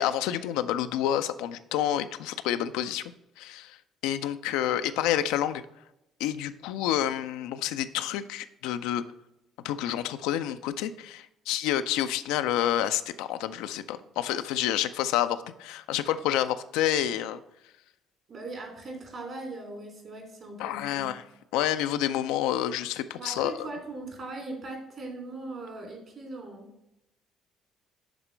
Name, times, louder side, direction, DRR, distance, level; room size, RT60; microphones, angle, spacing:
voice 1, 0.0-3.0 3.4-3.8 4.0-5.6 6.2-9.0 9.6-17.4 20.6-21.2 21.5-23.7, left 11 dB, 65° left, 10 dB, 0.4 m, -28 dB
voice 2, 18.3-21.1 23.2-26.7, right 2 dB, 50° right, 2 dB, 2.9 m, -40 dB
11.0 x 4.3 x 3.3 m, 0.88 s
figure-of-eight pair, 45°, 0 cm